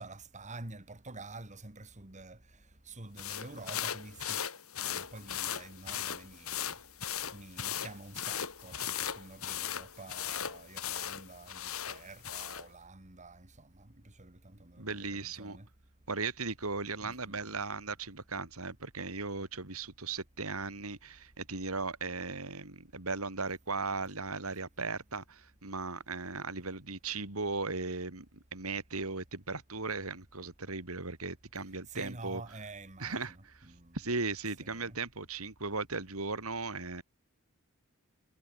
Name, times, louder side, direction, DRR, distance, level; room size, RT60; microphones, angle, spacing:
voice 1, 0.0-4.5 4.8-6.8 7.3-15.7 17.0-17.6 31.9-34.0 34.6-35.0, right 2 dB, 35° right, 2.4 m, -48 dB
sound 1, 3.2-12.7, left 9 dB, 80° left, 3.4 m, -38 dB
voice 2, 14.8-15.6 16.1-32.4 33.0-33.6 33.9-37.0, right 3 dB, 85° right, 3.8 m, -37 dB
head